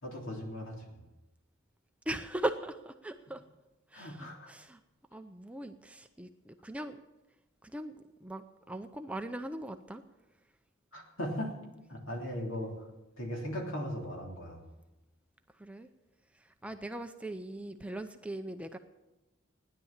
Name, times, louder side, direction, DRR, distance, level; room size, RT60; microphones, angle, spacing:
voice 1, 0.0-1.0 3.9-4.5 10.9-11.5 11.9-12.7 13.2-14.6, equal, 65° left, 0 dB, 3.4 m, -38 dB
voice 2, 2.1-3.4 3.9-4.8 5.1-7.0 7.6-10.0 15.6-15.9 16.3-18.8, right 1 dB, 5° right, 7 dB, 0.6 m, -39 dB
15.5 x 10.5 x 7.3 m, 1.0 s
head